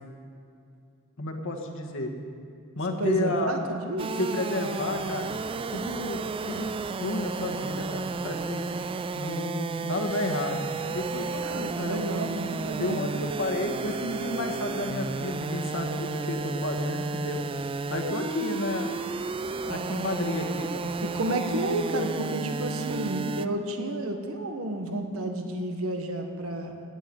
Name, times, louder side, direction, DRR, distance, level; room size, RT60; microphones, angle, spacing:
voice 1, 1.2-2.1 2.7-3.5 4.2-5.3 5.7-8.7 9.2-12.1 12.8-17.4 17.9-18.9 19.6-20.9, left 2 dB, 65° left, 3 dB, 1.6 m, -31 dB
voice 2, 3.0-4.1 11.4-13.0 21.0-26.7, right 1 dB, 80° right, 4 dB, 1.5 m, -31 dB
sound 1, 4.0-23.5, right 4 dB, 25° right, 0.3 m, -33 dB
17.0 x 7.0 x 9.5 m, 2.4 s
head